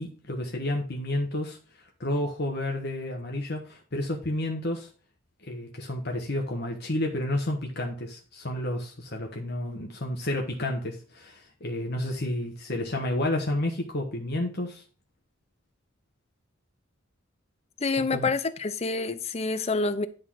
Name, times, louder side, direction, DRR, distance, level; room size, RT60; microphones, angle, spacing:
voice 1, 0.0-1.6 2.0-4.9 5.4-14.8 18.1-18.3, left 1 dB, 55° left, 1.2 m, -30 dB
voice 2, 17.8-20.1, left 3 dB, 30° left, 0.7 m, -27 dB
11.0 x 3.9 x 6.2 m
head